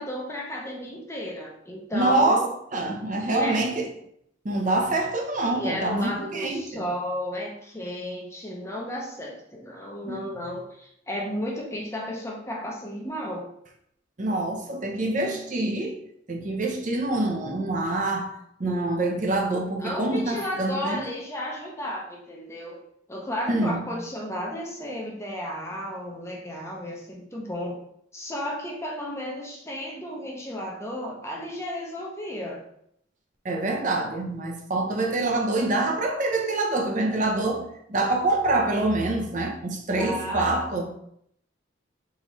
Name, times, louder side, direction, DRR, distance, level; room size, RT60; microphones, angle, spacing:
voice 1, 0.0-2.5 3.2-3.6 5.4-13.5 19.8-22.8 23.1-27.8 28.1-32.6 40.0-40.7, equal, 15° left, 0.7 m, -33 dB
voice 2, 1.9-2.5 2.7-3.9 4.4-6.8 10.1-10.2 14.2-16.0 16.3-21.1 23.5-23.9 33.4-40.9, right 2 dB, 40° right, 0.7 m, -26 dB
4.0 x 3.9 x 3.1 m
head